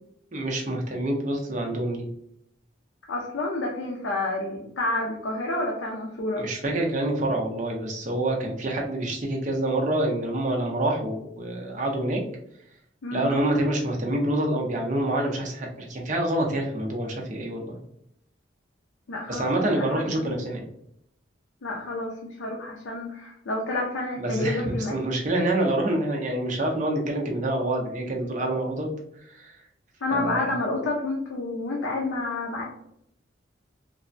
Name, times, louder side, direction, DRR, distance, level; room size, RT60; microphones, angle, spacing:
voice 1, 0.3-2.0 6.4-12.2 13.1-17.8 19.3-20.7 24.2-28.9 29.3-29.5 30.1-30.5, right 1 dB, 40° right, 0 dB, 0.5 m, -27 dB
voice 2, 3.1-6.5 13.0-13.3 19.1-20.3 21.6-25.0 30.0-32.6, left 2 dB, 85° left, -1 dB, 0.5 m, -29 dB
3.2 x 2.0 x 2.5 m, 0.74 s
head